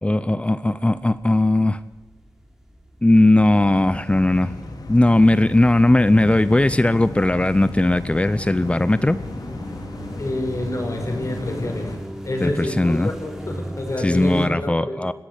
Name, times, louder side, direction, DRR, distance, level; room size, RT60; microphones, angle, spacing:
voice 1, 0.0-1.8 3.0-4.6 4.9-9.2 12.4-13.1 14.0-15.1, left 1 dB, 20° left, 15 dB, 0.6 m, -18 dB
sound 1, 0.6-14.5, equal, 5° right, 3.9 m, -39 dB
sound 2, 3.4-12.0, left 2 dB, 85° left, 3.8 m, -34 dB
voice 2, 10.2-11.9 12.2-15.0, left 1 dB, 50° left, 2 dB, 5.2 m, -27 dB
21.0 x 16.5 x 8.2 m, 1.1 s
wide cardioid pair, 95°, 7 cm